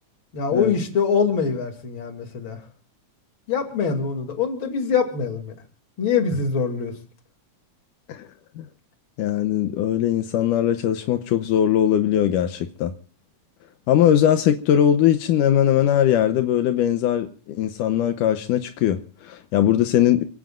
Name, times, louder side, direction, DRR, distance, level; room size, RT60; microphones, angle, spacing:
voice 1, 0.3-2.6 3.5-5.5 6.0-6.9, left 6 dB, 40° left, 3.1 m, -23 dB
voice 2, 9.2-12.9 13.9-20.2, left 10 dB, 80° left, 2.4 m, -20 dB
28.5 x 17.0 x 2.5 m
omnidirectional pair, 3.6 m